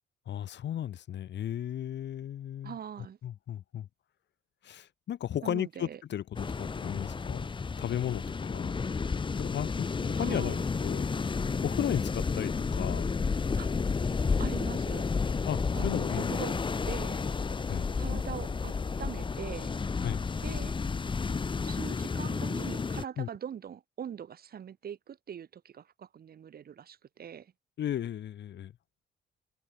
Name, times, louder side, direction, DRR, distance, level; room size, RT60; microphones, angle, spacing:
voice 1, 0.3-2.8 3.2-3.9 4.6-7.5 7.8-8.7 9.4-10.5 10.8-11.0 11.6-13.1 15.5-16.3 17.7-17.9 20.0-20.2 23.2-23.3 27.8-28.7, left 10 dB, 60° left, 1.4 m, -35 dB
voice 2, 2.6-3.2 5.4-6.0 10.2-10.7 13.6-13.7 14.4-15.1 15.7-17.2 18.0-18.7 19.0-19.8 20.4-20.8 21.6-27.5, right 8 dB, 50° right, 1.1 m, -42 dB
sound 1, 6.3-23.0, left 5 dB, 25° left, 0.8 m, -31 dB
cardioid pair, 90°, 20 cm